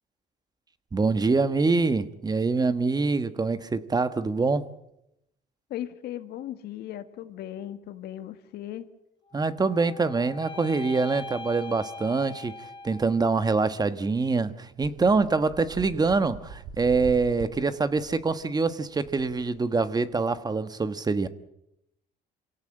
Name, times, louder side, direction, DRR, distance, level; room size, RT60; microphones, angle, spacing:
voice 1, 0.9-4.6 9.3-21.3, right 4 dB, 25° right, 1.3 m, -25 dB
voice 2, 5.7-8.9, left 12 dB, 75° left, 1.7 m, -37 dB
sound 1, 9.2-13.6, left 3 dB, 30° left, 3.8 m, -41 dB
sound 2, 14.9-20.0, right 6 dB, 90° right, 5.0 m, -43 dB
26.5 x 17.0 x 8.9 m
cardioid pair, 110°, 17 cm